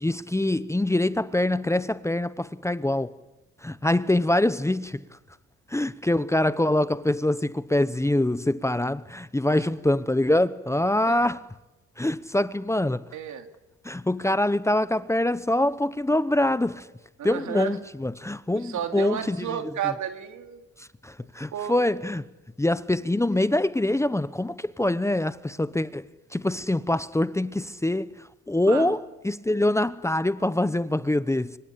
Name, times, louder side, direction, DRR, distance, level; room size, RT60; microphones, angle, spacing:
voice 1, 0.0-3.1 3.6-5.0 5.7-11.4 12.0-13.0 13.8-16.8 17.2-19.5 21.0-22.2 22.6-26.1 26.3-28.1 28.5-31.6, left 1 dB, 10° left, 0.9 m, -24 dB
voice 2, 12.8-13.5 17.2-17.8 18.5-20.7 21.5-21.8 28.6-29.0, right 9 dB, 70° right, 2.9 m, -33 dB
25.0 x 24.5 x 8.6 m
cardioid pair, 90°, 30 cm